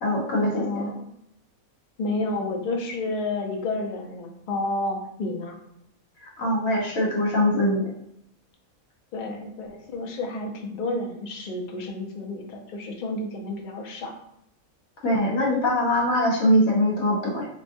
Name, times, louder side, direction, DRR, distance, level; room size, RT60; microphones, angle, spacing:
voice 1, 0.0-0.8 6.2-7.9 15.0-17.5, left 1 dB, 75° left, -2 dB, 1.4 m, -22 dB
voice 2, 0.5-1.1 2.0-5.5 9.1-14.1, left 2 dB, 50° left, 2 dB, 0.6 m, -30 dB
3.5 x 3.2 x 2.6 m, 0.77 s
omnidirectional pair, 1.5 m